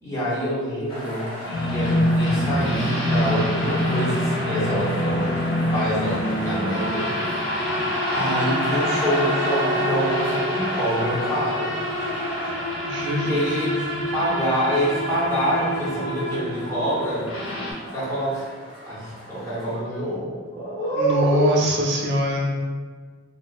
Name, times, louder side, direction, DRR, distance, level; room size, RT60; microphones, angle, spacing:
voice 1, 0.0-7.1 8.1-11.7 13.2-17.3 17.9-18.5 18.8-21.6, equal, 15° left, -9 dB, 0.7 m, -26 dB
sound 1, 0.9-19.8, left 1 dB, 45° left, 0.9 m, -34 dB
sound 2, 1.5-17.7, equal, 65° left, 0.6 m, -26 dB
voice 2, 12.8-13.6 20.9-22.5, equal, 60° right, -2 dB, 0.4 m, -23 dB
2.4 x 2.2 x 2.3 m, 1.4 s
head